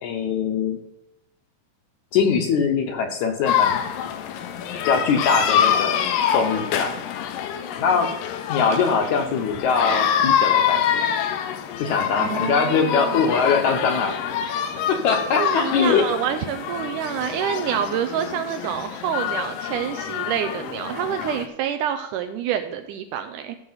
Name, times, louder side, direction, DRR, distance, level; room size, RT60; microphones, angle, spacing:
voice 1, 0.0-0.8 2.1-3.8 4.8-6.0 6.3-6.9 7.8-8.1 8.5-11.1 11.8-14.2 14.9-16.1, left 5 dB, 70° left, 3 dB, 2.1 m, -22 dB
sound 1, 3.5-21.5, left 9 dB, 85° left, 2.5 m, -26 dB
voice 2, 12.2-13.2 15.4-23.6, right 9 dB, 80° right, 8 dB, 2.0 m, -27 dB
15.0 x 6.5 x 4.0 m, 0.84 s
omnidirectional pair, 3.9 m